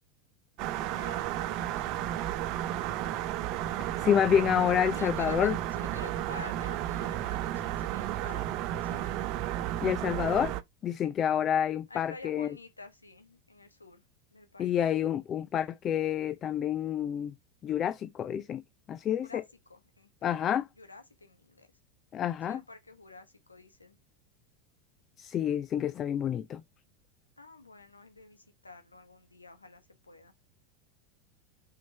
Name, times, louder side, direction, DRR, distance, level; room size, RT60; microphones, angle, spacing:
sound 1, 0.6-10.6, right 13 dB, 50° right, 1.0 m, -33 dB
voice 1, 0.8-2.0 4.9-9.3 11.9-14.0 14.3-14.7 19.2-19.4 19.7-21.7 22.5-24.0 27.4-30.3, left 3 dB, 85° left, 1.5 m, -50 dB
voice 2, 4.0-5.6 9.8-10.5 10.8-12.5 14.6-17.3 17.6-18.6 18.9-19.4 20.2-20.7 22.1-22.6 25.2-26.6, left 9 dB, 35° left, 0.6 m, -28 dB
6.2 x 5.8 x 4.6 m
figure-of-eight pair, 80°, 0 cm